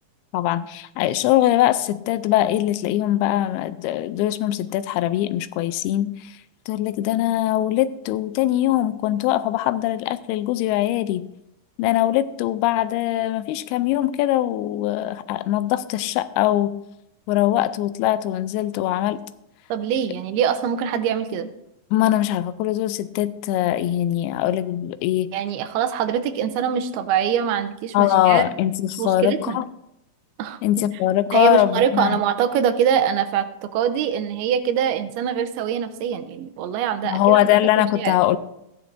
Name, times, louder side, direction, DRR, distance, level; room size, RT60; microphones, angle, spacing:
voice 1, 0.3-6.4 6.7-11.3 11.8-16.8 17.3-19.2 21.9-25.3 27.9-29.7 30.6-32.2 37.0-38.4, left 13 dB, 90° left, 13 dB, 2.5 m, -22 dB
voice 2, 19.7-21.5 25.3-28.5 29.0-29.6 30.4-30.6 31.3-37.4 37.8-38.2, right 8 dB, 85° right, 10 dB, 2.7 m, -23 dB
15.5 x 10.5 x 2.6 m, 0.83 s
omnidirectional pair, 4.4 m